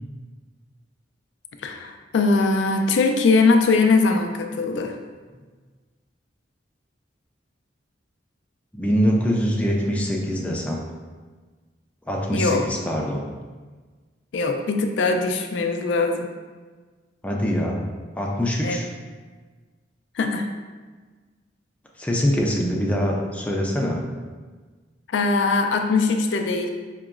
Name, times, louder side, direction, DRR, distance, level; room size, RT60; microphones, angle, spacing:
voice 1, 1.6-5.0 12.3-12.6 14.3-16.3 18.6-18.8 20.2-20.5 25.1-26.7, left 3 dB, 80° left, 5 dB, 0.4 m, -21 dB
voice 2, 8.7-10.8 12.1-13.3 17.2-17.9 18.2-18.9 22.0-24.0, equal, 5° left, -2 dB, 0.4 m, -23 dB
4.6 x 2.9 x 2.4 m, 1.4 s
head